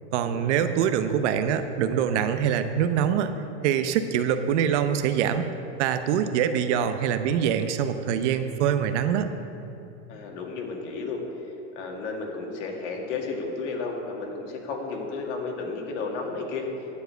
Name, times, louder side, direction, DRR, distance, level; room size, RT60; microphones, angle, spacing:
voice 1, 0.1-3.3 3.6-5.5 5.8-9.3, right 8 dB, 65° right, 9 dB, 0.8 m, -24 dB
voice 2, 10.1-11.2 11.8-16.7, left 4 dB, 70° left, 1 dB, 2.0 m, -33 dB
10.5 x 4.8 x 7.9 m, 2.8 s
supercardioid pair, 130°, 37 cm